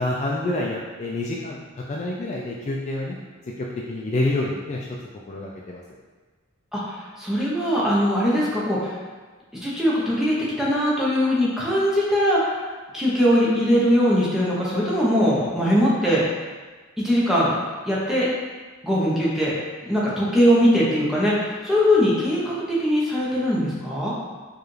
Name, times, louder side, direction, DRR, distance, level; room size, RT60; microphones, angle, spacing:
voice 1, 0.0-1.6 1.9-3.2 3.6-4.9 5.3-5.8 15.6-15.9, left 2 dB, 35° left, -3 dB, 0.3 m, -27 dB
voice 2, 6.7-8.9 9.5-12.6 12.9-16.4 17.0-17.5 17.9-18.3 18.8-19.5 19.8-24.2, equal, ahead, -7 dB, 0.8 m, -21 dB
4.7 x 2.4 x 3.1 m, 1.4 s
head